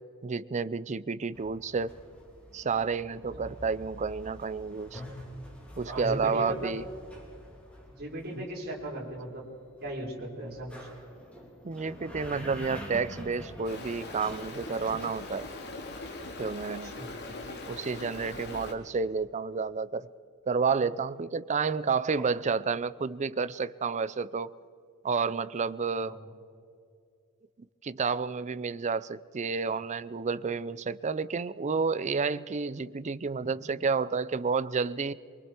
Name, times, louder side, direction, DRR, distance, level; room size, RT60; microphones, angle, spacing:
voice 1, 0.2-1.9 2.5-5.0 5.8-6.9 8.4-8.5 11.6-15.5 16.4-16.9 17.7-20.1 20.5-24.5 25.0-26.1 27.8-35.1, right 5 dB, 35° right, 0.5 m, -30 dB
sound 1, 1.3-16.8, equal, 5° left, 3.4 m, -47 dB
voice 2, 5.8-6.7 8.0-9.4 9.8-10.8 16.8-17.1 25.9-26.2, right 1 dB, 50° right, 4.2 m, -37 dB
Stream, 13.6-18.7, left 2 dB, 50° left, 2.4 m, -41 dB
24.5 x 23.5 x 4.5 m
head